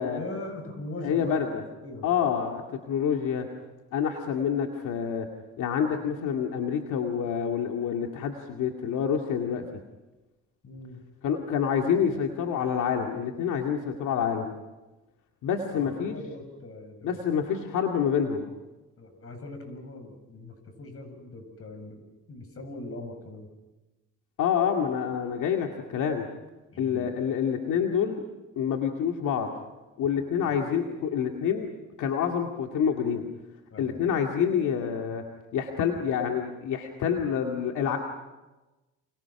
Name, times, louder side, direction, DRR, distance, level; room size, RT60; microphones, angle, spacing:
voice 1, 0.0-1.6 1.8-2.1 10.6-11.0 15.7-17.2 19.0-22.0 22.3-23.5 26.7-27.1 30.4-30.5 33.7-34.0, left 2 dB, 50° left, 6 dB, 7.9 m, -41 dB
voice 2, 1.0-1.6 2.0-3.5 3.9-5.3 5.6-9.6 11.2-14.5 15.4-16.2 17.0-18.5 24.4-26.3 26.8-28.2 28.6-29.5 30.0-31.7 32.0-33.2 33.8-35.2 35.5-38.0, left 7 dB, 80° left, 3 dB, 2.4 m, -27 dB
29.5 x 28.5 x 6.0 m, 1.1 s
cardioid pair, 90°, 30 cm